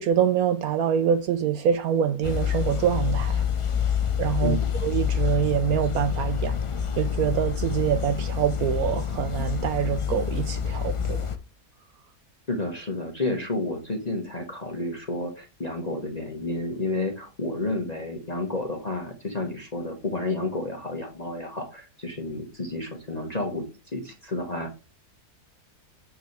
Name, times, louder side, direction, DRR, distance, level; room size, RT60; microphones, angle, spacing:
voice 1, 0.0-3.4 4.2-6.6 7.0-11.3, right 9 dB, 75° right, 1.1 m, -25 dB
sound 1, 2.2-11.4, left 8 dB, 55° left, 0.3 m, -27 dB
voice 2, 12.5-23.7 23.9-24.7, left 2 dB, 25° left, 1.5 m, -31 dB
7.8 x 6.6 x 3.3 m
omnidirectional pair, 1.7 m